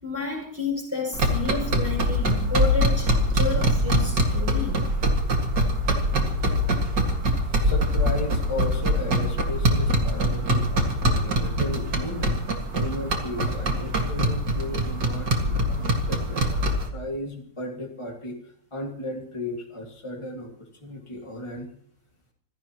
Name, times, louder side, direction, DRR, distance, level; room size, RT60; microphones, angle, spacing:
voice 1, 0.0-4.8, left 3 dB, 10° right, 0 dB, 6.1 m, -30 dB
sound 1, 1.1-16.9, equal, 80° right, 2.7 m, -23 dB
voice 2, 7.6-21.7, left 1 dB, 15° left, 0 dB, 2.1 m, -35 dB
26.0 x 16.5 x 3.0 m, 0.63 s
omnidirectional pair, 1.8 m